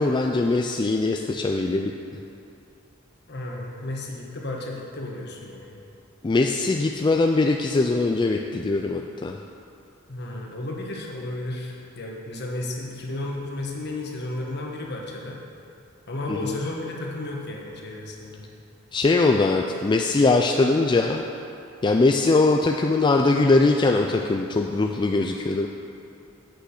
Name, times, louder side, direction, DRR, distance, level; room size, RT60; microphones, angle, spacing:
voice 1, 0.0-1.9 6.2-9.4 16.3-16.6 18.9-21.2 21.8-25.7, left 3 dB, 20° left, 2 dB, 0.3 m, -21 dB
voice 2, 3.3-5.8 10.1-15.4 16.1-18.4, left 2 dB, 55° left, -1 dB, 1.3 m, -33 dB
8.3 x 6.2 x 6.5 m, 2.8 s
head